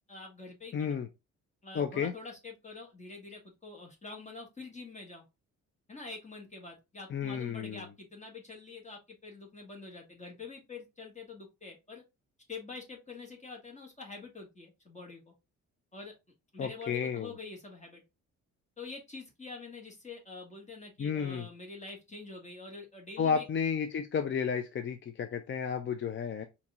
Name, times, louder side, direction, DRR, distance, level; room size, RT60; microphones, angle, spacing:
voice 1, 0.1-1.0 1.6-5.2 5.9-12.0 12.5-15.3 15.9-16.1 16.5-18.0 18.8-23.4, left 3 dB, 25° left, 1.8 m, -46 dB
voice 2, 0.7-1.1 1.7-2.1 7.1-7.9 16.6-17.3 21.0-21.5 23.2-26.4, left 7 dB, 40° left, 0.6 m, -32 dB
4.3 x 2.9 x 3.6 m
cardioid pair, 90°, 30 cm